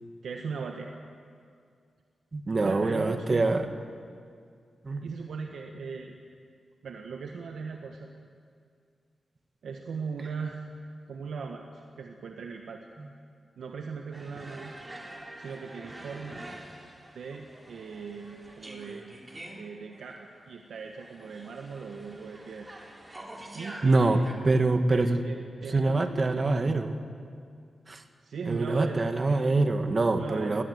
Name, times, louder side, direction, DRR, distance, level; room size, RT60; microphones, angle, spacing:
voice 1, 0.2-0.9 2.6-3.5 5.0-6.2 6.8-8.1 9.6-10.7 11.1-12.9 13.6-14.8 15.4-16.5 17.1-19.1 19.6-22.7 23.5-24.2 24.5-26.6 28.2-29.0 30.1-30.6, right 5 dB, 85° right, 3 dB, 1.4 m, -39 dB
voice 2, 2.3-3.7 4.8-5.0 13.0-13.1 23.8-25.2 25.7-26.9 27.9-28.0 28.5-30.6, right 2 dB, 40° right, 7 dB, 1.7 m, -25 dB
sound 1, 14.1-24.3, right 1 dB, 20° right, 3.4 m, -46 dB
20.0 x 18.5 x 9.5 m, 2.2 s
wide cardioid pair, 95°, 0 cm